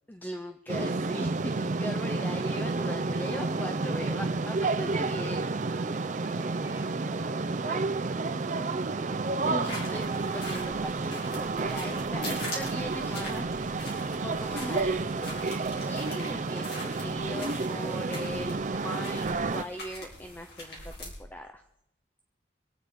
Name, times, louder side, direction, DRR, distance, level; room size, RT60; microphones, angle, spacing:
voice 1, 0.1-5.5 7.6-7.8 9.4-13.8 14.1-15.5 15.8-21.6, equal, 10° left, 6 dB, 0.6 m, -40 dB
sound 1, 0.7-19.6, right 3 dB, 40° right, 0.5 m, -30 dB
voice 2, 5.7-9.2 11.7-12.4, right 1 dB, 10° right, -5 dB, 3.7 m, -49 dB
sound 2, 9.6-21.2, left 1 dB, 55° left, 4.6 m, -43 dB
24.5 x 8.7 x 5.0 m, 0.82 s
head